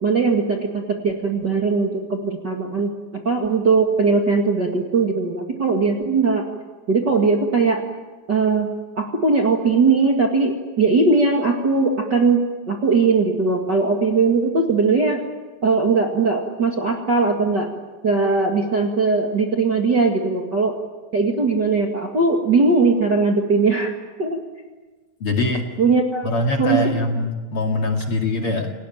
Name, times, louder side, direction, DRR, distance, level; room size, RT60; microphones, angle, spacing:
voice 1, 0.0-6.4 6.9-7.8 8.3-8.7 9.0-15.2 15.6-17.7 18.0-20.7 21.1-23.9 24.2-24.4 25.8-26.3 26.6-26.9, right 4 dB, 35° right, 2 dB, 2.1 m, -19 dB
voice 2, 25.2-25.6 26.2-28.7, left 2 dB, 40° left, 3 dB, 2.8 m, -23 dB
29.0 x 18.0 x 9.1 m, 1.3 s
omnidirectional pair, 4.2 m